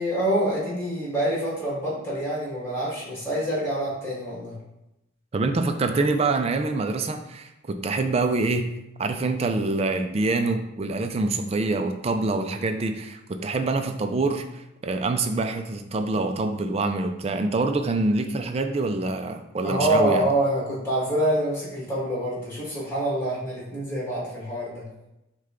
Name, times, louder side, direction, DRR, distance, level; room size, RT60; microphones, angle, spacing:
voice 1, 0.0-4.6 19.6-24.8, right 1 dB, 15° left, -7 dB, 1.7 m, -26 dB
voice 2, 5.3-8.7 9.0-20.2, right 3 dB, 30° right, 6 dB, 0.3 m, -25 dB
6.3 x 2.2 x 3.7 m, 0.89 s
head